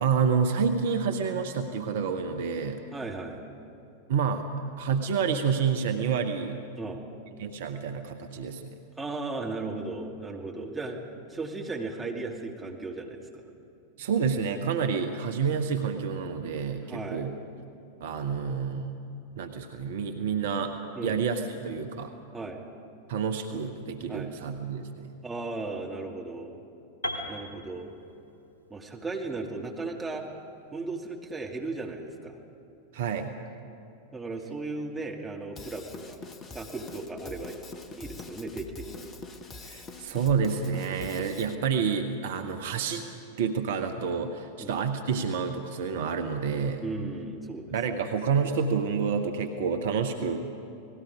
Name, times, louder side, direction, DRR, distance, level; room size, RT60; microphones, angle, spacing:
voice 1, 0.0-2.8 4.1-4.5 4.8-6.6 7.4-8.8 14.0-17.3 18.0-19.0 19.4-20.7 21.0-22.1 23.1-25.1 32.9-33.4 39.6-43.1 43.4-46.8 47.7-50.4, right 6 dB, 55° right, 8 dB, 1.1 m, -28 dB
voice 2, 2.9-3.5 6.8-7.0 9.0-11.0 11.3-13.5 16.8-17.3 21.0-21.2 22.3-22.6 24.1-24.3 25.2-26.6 27.3-27.9 28.7-30.2 30.7-32.4 34.1-36.2 36.5-37.6 38.0-39.1 44.6-44.8 46.8-48.1 50.2-50.4, right 3 dB, 10° right, -1 dB, 2.6 m, -36 dB
Piano, 27.0-31.0, equal, 70° left, 2.7 m, -40 dB
Drum kit / Drum, 35.6-41.6, left 4 dB, 25° left, 1.2 m, -44 dB
30.0 x 19.5 x 5.0 m, 2.8 s
figure-of-eight pair, 90°, 0 cm